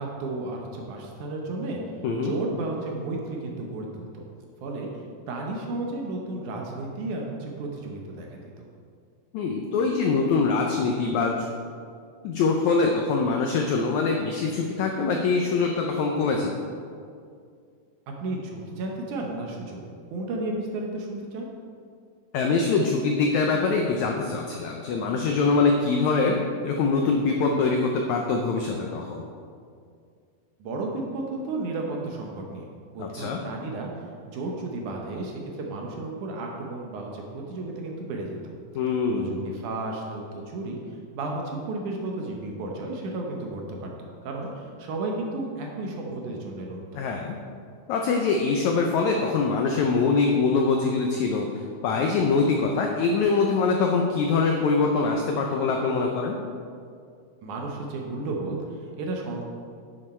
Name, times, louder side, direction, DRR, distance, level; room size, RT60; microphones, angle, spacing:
voice 1, 0.0-1.8 2.2-4.3 4.6-4.9 5.3-8.6 18.1-19.8 20.1-21.5 30.6-32.7 32.9-33.9 34.3-38.5 39.1-40.8 41.1-47.0 57.4-59.4, right 2 dB, 70° right, 0 dB, 2.2 m, -33 dB
voice 2, 9.3-11.4 12.2-16.5 22.3-29.3 33.0-33.4 38.7-39.5 46.9-47.4 47.9-51.5 51.8-56.4, left 4 dB, 85° left, 2 dB, 1.6 m, -24 dB
10.5 x 7.2 x 4.3 m, 2.3 s
omnidirectional pair, 4.2 m